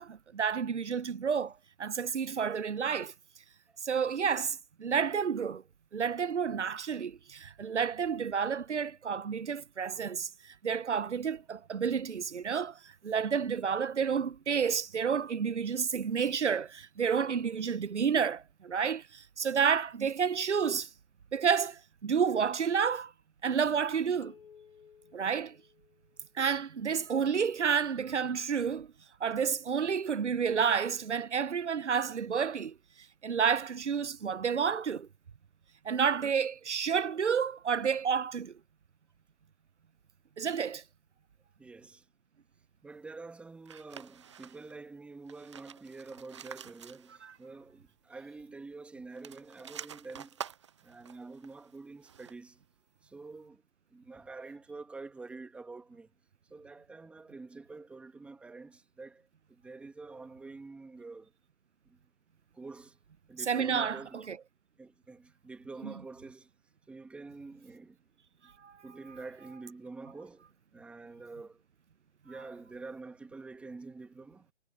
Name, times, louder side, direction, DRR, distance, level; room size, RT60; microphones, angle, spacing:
voice 1, 0.0-1.5 1.8-3.1 3.8-5.6 5.9-20.9 21.3-23.1 23.4-24.3 25.1-25.6 26.3-28.9 29.2-32.7 33.2-35.1 35.8-38.5 40.4-40.8 47.2-47.3 63.5-64.4 65.8-65.9 68.6-68.8, right 6 dB, 90° right, 0.7 m, -30 dB
sound 1, 24.2-26.6, left 7 dB, 55° left, 1.5 m, -58 dB
voice 2, 41.6-42.0 42.8-50.4 50.8-52.6 53.0-53.6 53.9-56.1 56.5-61.3 61.8-62.0 62.5-63.0 63.3-64.2 64.8-66.5 66.9-68.0 68.4-68.5 68.8-70.5 70.7-71.6 72.2-74.5, right 3 dB, 5° right, 1.5 m, -47 dB
sound 2, 43.6-44.8 45.2-47.4 47.7-47.8 49.0-52.6, right 8 dB, 25° right, 0.5 m, -48 dB
figure-of-eight pair, 145°, 34 cm